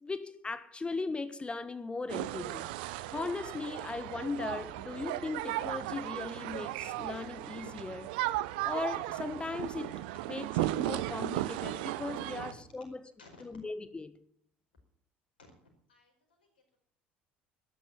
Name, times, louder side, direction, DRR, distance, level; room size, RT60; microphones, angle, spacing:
voice 1, 0.0-2.7 3.1-8.1 8.6-9.9 10.3-13.0 13.4-14.1, left 3 dB, 20° left, 1.2 m, -38 dB
sound 1, 2.1-12.5, right 16 dB, 70° right, 0.7 m, -36 dB
Wind instrument woodwind instrument, 5.0-12.6, right 11 dB, 50° right, 1.3 m, -57 dB
voice 2, 15.9-16.8, left 3 dB, 80° left, 4.9 m, -57 dB
13.0 x 10.5 x 8.9 m
hypercardioid pair, 65°, 5 cm